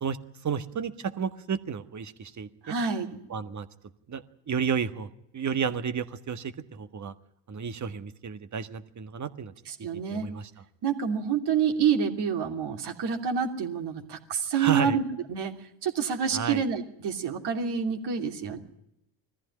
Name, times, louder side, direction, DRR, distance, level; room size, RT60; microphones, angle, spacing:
voice 1, 0.4-2.7 3.3-3.7 4.1-7.1 7.5-9.5 10.1-10.5 14.5-15.0 16.3-16.6, right 7 dB, 35° right, 10 dB, 1.6 m, -32 dB
voice 2, 2.6-3.2 9.7-10.3 10.8-15.0 15.3-15.5 15.8-18.6, right 7 dB, 55° right, 4 dB, 2.9 m, -28 dB
21.0 x 14.5 x 9.9 m, 0.83 s
hypercardioid pair, 65°, 50 cm